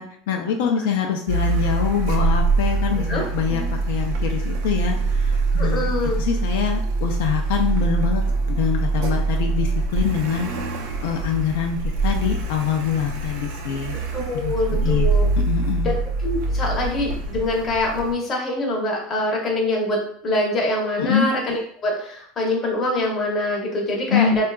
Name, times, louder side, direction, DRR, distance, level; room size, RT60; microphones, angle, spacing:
voice 1, 0.0-5.9 6.2-8.2 8.6-10.5 11.0-14.0 14.4-15.1 15.5-16.0 21.0-21.3 24.1-24.4, left 7 dB, 70° left, 2 dB, 0.4 m, -24 dB
Car, 1.3-18.1, right 3 dB, 60° right, 0.4 m, -24 dB
voice 2, 5.6-6.2 14.1-15.3 15.8-15.9 16.2-24.5, left 1 dB, 25° left, -1 dB, 0.7 m, -24 dB
3.7 x 2.3 x 2.2 m, 0.63 s
supercardioid pair, 165°, 0 cm